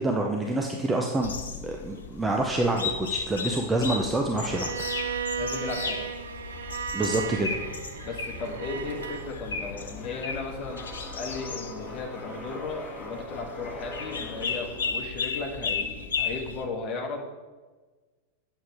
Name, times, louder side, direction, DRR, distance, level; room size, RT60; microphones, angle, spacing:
voice 1, 0.0-1.3 1.6-5.3 6.9-7.5, right 2 dB, 10° right, 1 dB, 0.7 m, -27 dB
sound 1, 1.2-16.6, left 5 dB, 70° left, 0.8 m, -35 dB
Bowed string instrument, 4.4-9.3, right 7 dB, 65° right, 0.4 m, -35 dB
voice 2, 5.4-6.1 8.0-10.8 11.2-17.2, left 3 dB, 35° left, 0 dB, 1.6 m, -35 dB
sound 2, 8.4-14.9, left 1 dB, 20° left, 2.3 m, -42 dB
8.8 x 7.2 x 3.4 m, 1.3 s
figure-of-eight pair, 90°, 0 cm